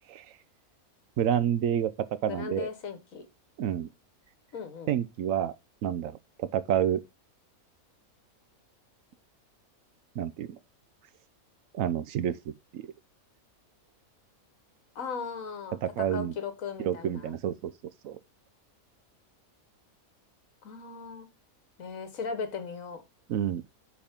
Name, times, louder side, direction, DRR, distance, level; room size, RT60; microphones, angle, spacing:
voice 1, 1.2-2.7 3.6-3.9 4.9-5.5 5.8-7.0 10.2-10.5 11.7-12.4 12.7-12.8 15.8-16.3 16.8-17.7 18.0-18.2 23.3-23.6, right 10 dB, 70° right, 1.0 m, -29 dB
voice 2, 2.3-3.3 4.5-4.9 15.0-17.3 20.6-21.3 21.8-23.0, left 5 dB, 70° left, 1.6 m, -37 dB
8.5 x 4.9 x 3.6 m
omnidirectional pair, 1.5 m